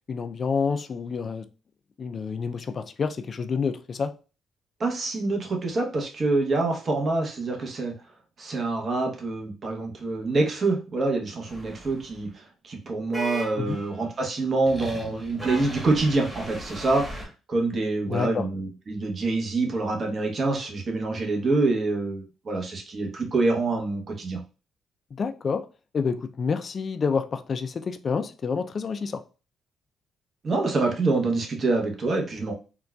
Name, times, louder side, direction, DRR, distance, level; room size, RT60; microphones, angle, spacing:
voice 1, 0.1-1.5 2.0-4.1 13.6-13.8 18.1-18.5 25.1-25.7 25.9-29.2, left 5 dB, 45° left, 0.3 m, -28 dB
voice 2, 4.8-7.9 8.4-24.4 30.4-32.5, right 3 dB, 45° right, 0.9 m, -26 dB
sound 1, 11.5-12.2 13.1-14.1 14.6-17.3, right 1 dB, 5° right, 1.2 m, -37 dB
3.8 x 2.3 x 2.3 m
cardioid pair, 90°, 0 cm